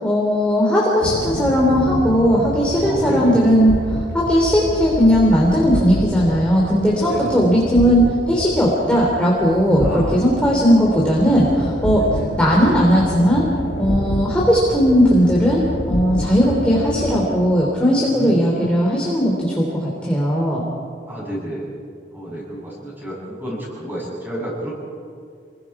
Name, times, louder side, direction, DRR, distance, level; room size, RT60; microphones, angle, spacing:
voice 1, 0.0-3.7 4.1-12.0 12.4-13.4 13.8-20.6, equal, 5° left, -5 dB, 3.2 m, -17 dB
Horror ambient soundscape loop, 1.0-17.3, left 1 dB, 65° left, 1.3 m, -28 dB
voice 2, 2.9-3.4 7.0-7.5 9.8-10.3 11.9-12.3 18.1-18.6 21.1-21.7 22.1-24.7, right 1 dB, 10° right, -5 dB, 7.3 m, -30 dB
28.5 x 21.5 x 4.9 m, 2.2 s
head